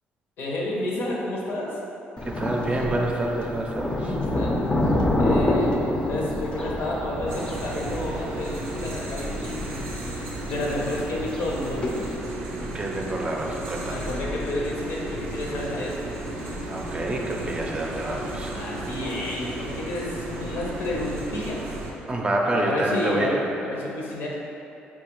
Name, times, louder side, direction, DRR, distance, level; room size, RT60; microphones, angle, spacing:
voice 1, 0.4-1.8 4.1-4.7 5.2-9.9 10.4-12.0 13.9-16.1 18.5-21.6 22.5-24.4, left 1 dB, 70° left, -3 dB, 0.7 m, -30 dB
Thunder, 2.2-12.2, left 1 dB, 25° left, 0.5 m, -28 dB
voice 2, 2.3-4.2 12.6-14.1 16.6-18.5 22.1-23.3, right 1 dB, 30° right, -1 dB, 0.5 m, -27 dB
sound 1, 7.3-21.9, right 1 dB, 80° right, 0.5 m, -34 dB
4.5 x 2.3 x 2.9 m, 2.8 s
supercardioid pair, 75°, 4 cm